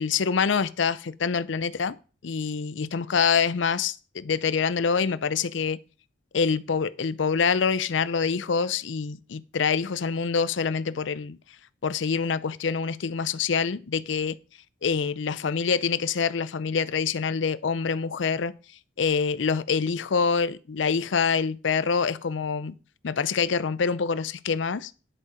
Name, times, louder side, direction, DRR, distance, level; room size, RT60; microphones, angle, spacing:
voice 1, 0.0-2.0 2.2-5.8 6.3-11.4 11.8-14.4 14.8-18.5 19.0-22.7 23.0-24.9, left 5 dB, 75° left, 0.5 m, -26 dB
10.0 x 8.2 x 5.1 m
head